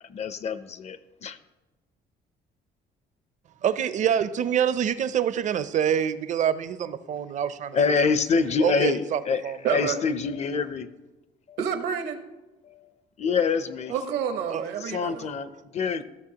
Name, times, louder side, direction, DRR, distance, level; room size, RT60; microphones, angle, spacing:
voice 1, 0.1-1.4 7.7-10.9 11.5-11.6 12.6-12.9 13.2-13.9 14.8-16.0, left 5 dB, 40° left, 14 dB, 0.5 m, -26 dB
voice 2, 3.6-8.0 8.6-9.6 14.5-14.6, right 9 dB, 45° right, 13 dB, 0.5 m, -26 dB
voice 3, 9.6-10.0 11.6-12.2 13.9-15.3, right 7 dB, 80° right, 8 dB, 1.0 m, -28 dB
14.0 x 6.3 x 2.8 m, 1.1 s
cardioid pair, 110°, 17 cm